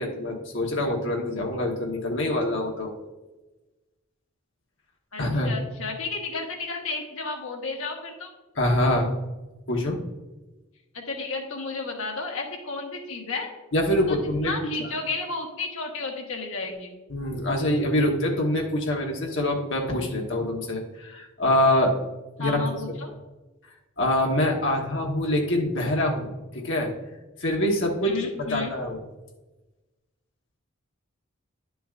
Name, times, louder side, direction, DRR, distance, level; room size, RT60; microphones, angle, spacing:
voice 1, 0.0-2.9 5.2-5.5 8.6-9.2 9.7-10.0 13.7-14.5 14.8-14.9 17.1-22.0 22.4-22.6 24.0-26.9 27.4-28.1 28.4-29.0, left 1 dB, 60° left, 0 dB, 1.3 m, -25 dB
voice 2, 5.1-8.3 10.9-13.5 14.1-14.2 14.4-17.0 22.4-23.1 28.0-28.7, left 3 dB, 75° left, 1 dB, 1.4 m, -32 dB
10.0 x 6.9 x 2.5 m, 1.1 s
head